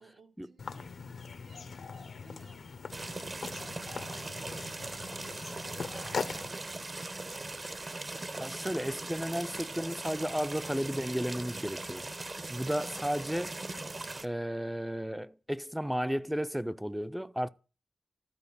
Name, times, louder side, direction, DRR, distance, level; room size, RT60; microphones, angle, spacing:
voice 1, 0.0-7.1, right 3 dB, 90° right, 1.8 m, -60 dB
sound 1, 0.6-6.5, left 5 dB, 75° left, 0.8 m, -41 dB
sound 2, 2.9-14.3, right 2 dB, 35° right, 0.7 m, -40 dB
voice 2, 8.4-12.1 12.5-13.6 14.2-17.5, equal, 5° right, 0.4 m, -33 dB
13.0 x 4.7 x 8.4 m
wide cardioid pair, 105°, 0 cm